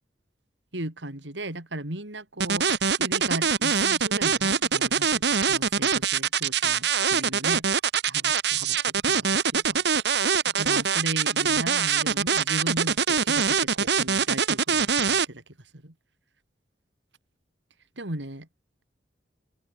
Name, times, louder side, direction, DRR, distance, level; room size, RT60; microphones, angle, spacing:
voice 1, 0.7-2.7 3.0-7.6 8.1-10.0 10.4-15.4 15.7-15.9 18.0-18.5, right 1 dB, 80° right, 4.2 m, -36 dB
sound 1, 2.4-15.2, right 6 dB, 65° right, 1.7 m, -23 dB
open air
head